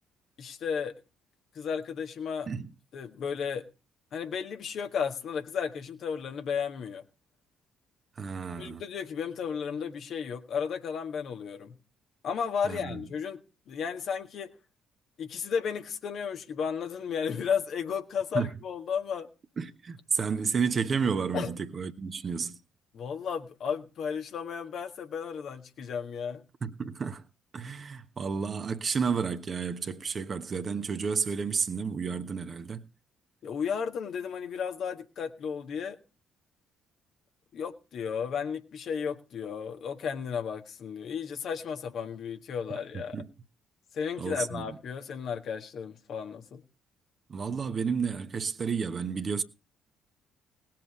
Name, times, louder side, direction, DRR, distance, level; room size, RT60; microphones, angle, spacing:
voice 1, 0.4-0.9 1.5-2.5 2.9-3.7 4.1-7.0 8.6-11.8 12.2-13.4 13.7-14.5 15.2-19.3 21.3-21.5 22.9-26.4 33.4-36.0 37.5-43.2 43.9-46.6, left 6 dB, 50° left, 1.6 m, -33 dB
voice 2, 8.2-8.8 12.6-13.0 18.3-18.5 19.6-22.6 26.6-27.2 27.5-32.8 42.9-43.3 44.2-44.8 47.3-49.4, right 5 dB, 40° right, 1.3 m, -31 dB
19.5 x 7.7 x 4.8 m
figure-of-eight pair, 45°, 0 cm